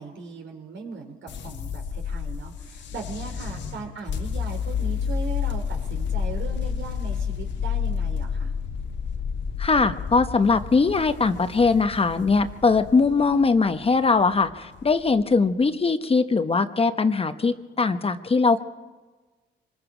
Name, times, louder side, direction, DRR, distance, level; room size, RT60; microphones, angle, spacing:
voice 1, 0.0-8.5, right 5 dB, 70° right, 3 dB, 3.8 m, -38 dB
sound 1, 1.3-15.5, left 7 dB, 65° left, 1.5 m, -30 dB
voice 2, 9.6-18.6, left 4 dB, 30° left, 9 dB, 1.0 m, -21 dB
25.0 x 20.5 x 5.1 m, 1.3 s
cardioid pair, 90°, 20 cm